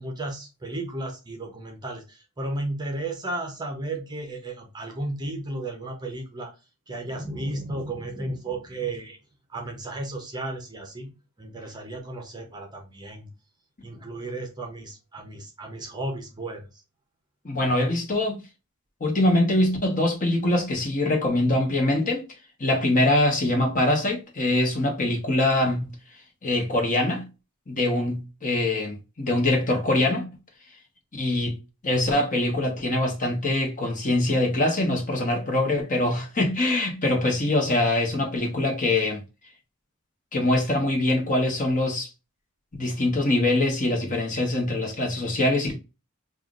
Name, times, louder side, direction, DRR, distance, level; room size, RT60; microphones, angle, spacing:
voice 1, 0.0-6.5 6.9-9.2 9.5-13.3 13.8-16.8, right 2 dB, 20° right, 0.8 m, -34 dB
voice 2, 17.4-18.4 19.0-22.2 22.6-25.9 26.4-27.3 27.7-30.3 31.1-31.6 31.8-39.2 40.3-42.1 42.7-45.8, left 1 dB, 35° left, 1.1 m, -23 dB
5.6 x 2.5 x 2.4 m
head